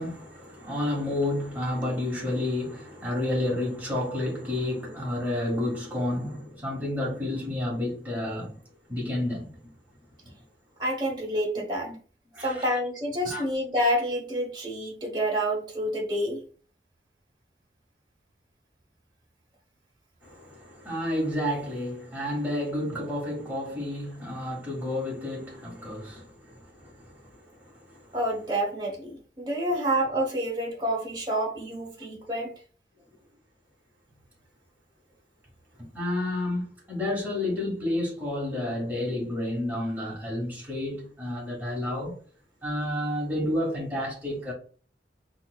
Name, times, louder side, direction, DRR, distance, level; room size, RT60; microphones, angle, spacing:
voice 1, 0.0-8.6 8.9-9.5 11.8-11.9 12.3-12.8 13.2-13.4 20.2-27.1 27.9-28.0 35.8-42.2 42.6-44.5, left 1 dB, 10° right, 1.6 m, -30 dB
voice 2, 10.8-11.9 12.4-16.4 28.1-32.5, equal, 25° right, 1.0 m, -28 dB
4.2 x 2.4 x 2.3 m
head